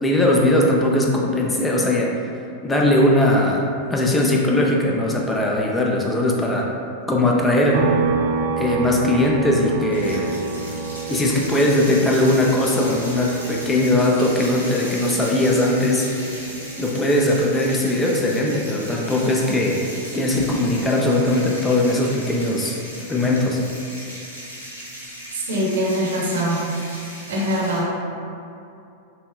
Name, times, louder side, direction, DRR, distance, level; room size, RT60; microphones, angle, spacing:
voice 1, 0.0-2.2 2.6-6.7 7.1-7.9 8.6-10.3 11.1-16.4 16.8-19.8 20.1-22.8 23.1-23.6, left 1 dB, 15° left, -1 dB, 0.5 m, -20 dB
sound 1, 7.7-21.3 21.6-23.8, right 4 dB, 50° right, 0.5 m, -30 dB
sound 2, 9.9-27.8, equal, 85° left, 0.9 m, -37 dB
voice 2, 25.5-26.6 27.3-27.9, equal, 65° right, -4 dB, 0.9 m, -22 dB
6.7 x 2.2 x 2.4 m, 2.7 s
figure-of-eight pair, 90°, 0 cm